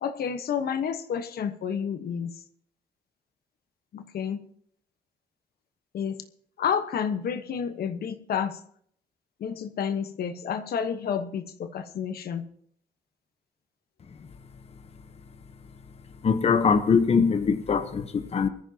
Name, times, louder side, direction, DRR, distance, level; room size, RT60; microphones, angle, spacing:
voice 1, 0.0-2.3 3.9-4.4 5.9-6.2 6.6-8.6 9.4-12.4, left 7 dB, 75° left, 8 dB, 1.2 m, -30 dB
voice 2, 16.2-18.5, left 5 dB, 40° left, 9 dB, 1.0 m, -22 dB
21.0 x 14.5 x 2.9 m, 0.62 s
cardioid pair, 115°, 16 cm